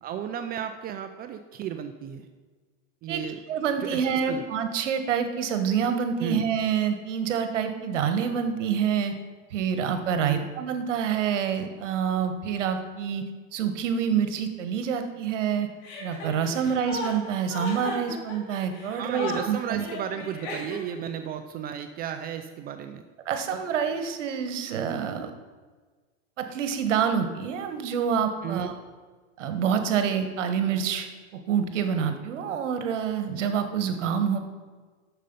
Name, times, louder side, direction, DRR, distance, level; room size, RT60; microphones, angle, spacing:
voice 1, 0.0-2.3 3.0-3.4 3.8-4.4 6.2-6.4 10.2-10.5 18.9-23.0 28.4-28.7, right 9 dB, 25° right, 8 dB, 0.4 m, -34 dB
voice 2, 3.5-9.2 9.5-13.2 13.5-15.7 16.0-19.9 23.2-25.3 26.4-28.7 29.4-31.1 31.5-34.4, right 7 dB, 90° right, 8 dB, 1.2 m, -27 dB
Chuckle chortle, 15.8-21.1, left 2 dB, 45° left, 2.8 m, -36 dB
8.3 x 6.5 x 5.3 m, 1.4 s
supercardioid pair, 130°, 36 cm